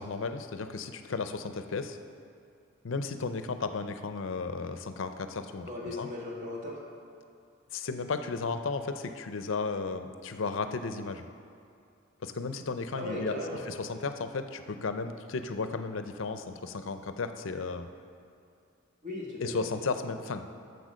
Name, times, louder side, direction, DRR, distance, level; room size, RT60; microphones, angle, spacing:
voice 1, 0.0-2.0 2.8-6.1 7.7-11.3 12.2-13.3 13.7-17.9 19.4-20.5, left 4 dB, 70° left, 9 dB, 0.6 m, -34 dB
voice 2, 5.7-6.8 12.9-13.6 19.0-19.5, left 2 dB, 40° right, -3 dB, 1.8 m, -37 dB
8.1 x 7.0 x 6.3 m, 2.5 s
head